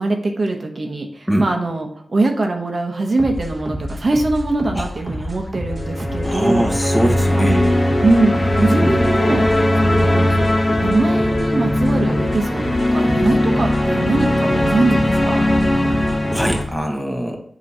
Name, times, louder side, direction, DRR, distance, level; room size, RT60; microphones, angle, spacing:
voice 1, 0.0-6.7 7.4-7.7 8.0-9.5 9.8-10.5 10.8-15.4, right 2 dB, 55° right, 3 dB, 1.0 m, -22 dB
sound 1, 3.2-16.8, equal, 30° right, 1.1 m, -30 dB
sound 2, 5.6-16.6, left 1 dB, 30° left, 1.2 m, -19 dB
voice 2, 6.2-7.6 8.8-9.1 16.3-17.4, equal, ahead, 1 dB, 1.4 m, -22 dB
7.8 x 3.1 x 5.4 m, 0.62 s
cardioid pair, 60°, 0 cm